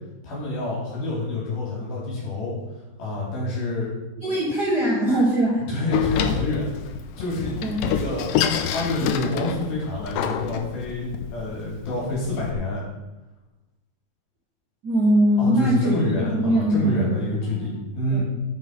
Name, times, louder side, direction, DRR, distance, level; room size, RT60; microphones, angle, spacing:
voice 1, 0.2-2.6 3.0-3.9 5.7-6.7 7.2-12.8 15.4-18.2, left 2 dB, 65° left, -4 dB, 4.7 m, -27 dB
voice 2, 4.2-5.6 7.6-7.9 14.8-15.9 16.2-17.8 18.1-18.2, right 1 dB, 50° right, -5 dB, 1.2 m, -22 dB
Door, 5.9-12.5, left 8 dB, 90° left, 2.8 m, -27 dB
9.5 x 7.8 x 5.3 m, 1.0 s
omnidirectional pair, 4.7 m